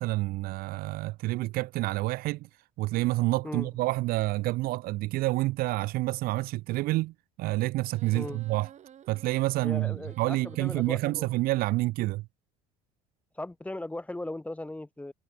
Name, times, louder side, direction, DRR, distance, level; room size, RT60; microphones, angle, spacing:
voice 1, 0.0-2.5 2.8-8.7 9.1-12.3, right 19 dB, 60° right, 0.4 m, -28 dB
sound 1, 7.8-10.9, right 9 dB, 40° right, 1.3 m, -53 dB
voice 2, 9.6-11.3 13.4-15.1, left 1 dB, 10° left, 0.8 m, -38 dB
supercardioid pair, 85°, 17 cm